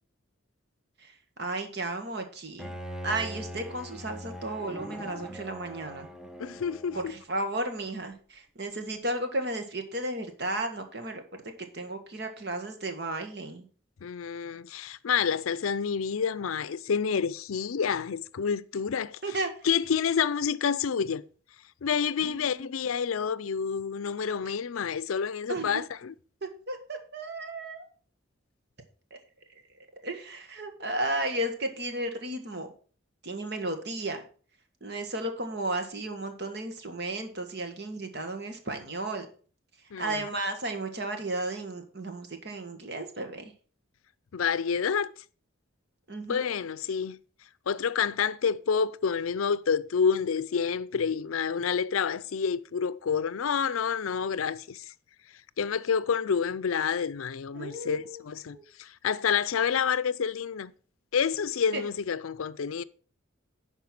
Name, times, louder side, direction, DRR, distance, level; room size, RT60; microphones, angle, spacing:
voice 1, 1.4-2.7 3.0-6.1 6.9-11.4 11.7-13.6 19.2-19.5 22.2-22.7 25.5-25.8 26.4-27.9 29.1-29.2 30.0-32.7 33.2-34.2 34.8-39.2 40.0-43.5 46.1-46.4 57.5-58.2 58.5-58.6 61.7-61.8, right 2 dB, 50° right, 1.6 m, -34 dB
Bowed string instrument, 2.6-7.4, equal, 5° right, 0.7 m, -41 dB
voice 2, 6.4-7.2 14.0-19.2 19.6-21.2 21.8-26.1 39.9-40.2 44.3-45.1 46.3-47.2 47.7-54.8 55.6-60.7 61.1-62.8, left 6 dB, 90° left, 0.5 m, -28 dB
11.0 x 4.5 x 5.9 m
head